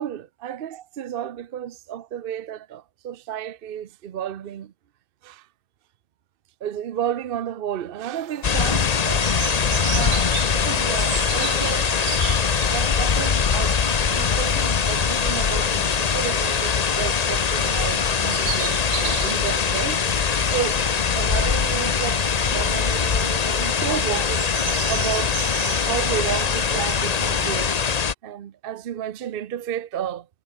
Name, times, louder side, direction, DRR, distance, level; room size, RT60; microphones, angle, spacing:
voice 1, 0.0-4.7 5.2-5.5 6.6-9.5 9.9-12.0 12.7-20.0 20.5-20.9 21.1-24.5 24.9-30.3, right 10 dB, 60° right, 0.9 m, -32 dB
sound 1, 8.1-28.0, right 10 dB, 85° right, 1.1 m, -37 dB
sound 2, 8.4-28.1, left 6 dB, 40° left, 0.8 m, -22 dB
omnidirectional pair, 1.2 m